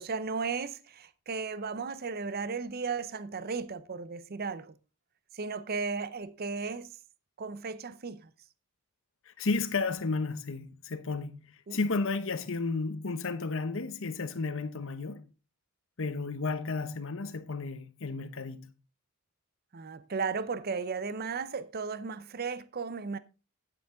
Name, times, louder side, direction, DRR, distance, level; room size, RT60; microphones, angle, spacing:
voice 1, 0.0-4.7 5.3-6.9 7.4-8.3 11.7-11.8 19.7-23.2, right 5 dB, 45° right, 0.6 m, -35 dB
voice 2, 9.3-15.2 16.0-18.7, left 3 dB, 60° left, 0.9 m, -33 dB
9.6 x 8.9 x 3.7 m
head